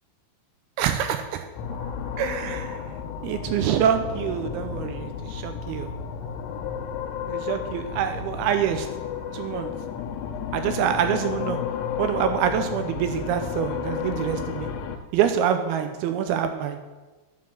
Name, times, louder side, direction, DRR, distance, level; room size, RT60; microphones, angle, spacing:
voice 1, 0.8-1.5 2.2-2.8 3.2-5.9 7.3-8.9 9.3-9.7 10.5-11.6 12.0-14.7 15.1-16.8, right 8 dB, 80° right, 8 dB, 2.4 m, -26 dB
sound 1, 1.6-15.0, left 7 dB, 90° left, 3.0 m, -32 dB
10.0 x 5.7 x 7.3 m, 1.2 s
omnidirectional pair, 4.8 m